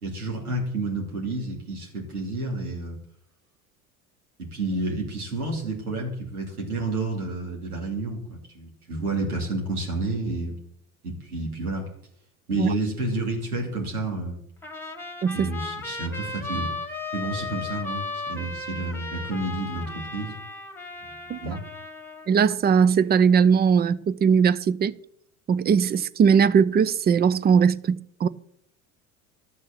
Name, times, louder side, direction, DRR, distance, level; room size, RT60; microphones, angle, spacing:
voice 1, 0.0-3.0 4.4-10.6 11.0-11.9 12.5-14.4 15.3-16.7 17.1-20.3 21.1-21.6, right 2 dB, 90° right, 2.8 m, -30 dB
Trumpet, 14.6-22.3, left 2 dB, 5° left, 2.0 m, -35 dB
voice 2, 22.3-24.9 25.5-28.3, right 6 dB, 25° right, 0.5 m, -20 dB
13.5 x 6.4 x 7.2 m
hypercardioid pair, 70°, 43 cm